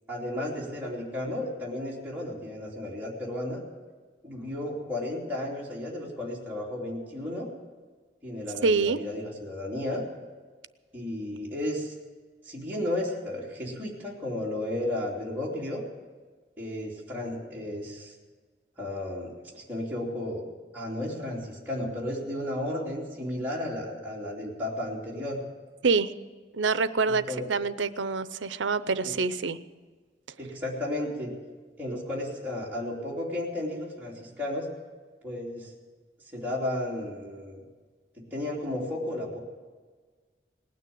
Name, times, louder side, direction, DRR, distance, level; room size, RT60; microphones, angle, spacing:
voice 1, 0.1-3.6 4.2-7.5 8.2-10.0 10.9-11.9 12.4-15.8 16.6-18.1 18.8-20.4 20.7-25.4 27.1-27.5 29.0-29.1 30.4-31.3 31.8-34.7 35.2-35.7 36.3-37.6 38.2-39.4, left 1 dB, 10° right, -6 dB, 3.0 m, -33 dB
voice 2, 8.6-9.0 25.8-26.1 26.5-29.6, right 4 dB, 80° right, 14 dB, 0.7 m, -26 dB
19.0 x 9.4 x 7.8 m, 1.4 s
head